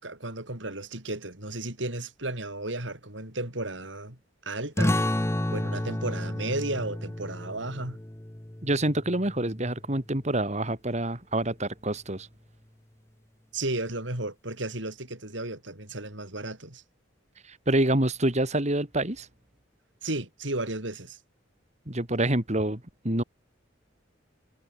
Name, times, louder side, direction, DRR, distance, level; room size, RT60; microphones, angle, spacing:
voice 1, 0.0-5.0 5.5-8.0 13.5-16.8 20.0-21.2, right 2 dB, 75° right, 6.8 m, -34 dB
sound 1, 4.8-10.0, left 1 dB, 15° left, 0.9 m, -31 dB
voice 2, 8.6-12.3 17.4-19.3 21.9-23.2, right 1 dB, 35° right, 3.3 m, -27 dB
head